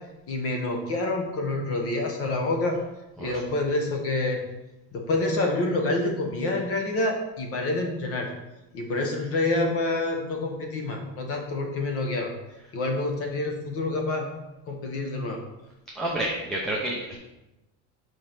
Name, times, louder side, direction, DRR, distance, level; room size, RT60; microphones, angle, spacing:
voice 1, 0.3-2.8 3.2-4.4 4.9-8.3 8.7-12.3 12.7-14.3 14.7-15.4, left 2 dB, 35° left, 2 dB, 1.0 m, -27 dB
voice 2, 16.0-17.2, right 1 dB, ahead, -6 dB, 0.6 m, -29 dB
5.1 x 4.6 x 5.8 m, 0.99 s
cardioid pair, 170°, 38 cm